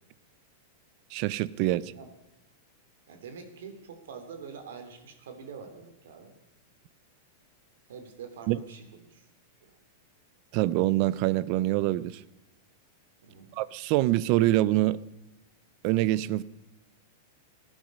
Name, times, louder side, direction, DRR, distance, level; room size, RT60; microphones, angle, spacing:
voice 1, 1.1-1.9 8.5-8.6 10.5-12.2 13.6-15.0 15.8-16.4, right 16 dB, 40° right, 0.5 m, -25 dB
voice 2, 3.1-6.3 7.9-9.3 9.6-9.7 13.2-13.6, right 6 dB, 80° right, 2.7 m, -45 dB
18.5 x 10.5 x 5.5 m
supercardioid pair, 170°, 0 cm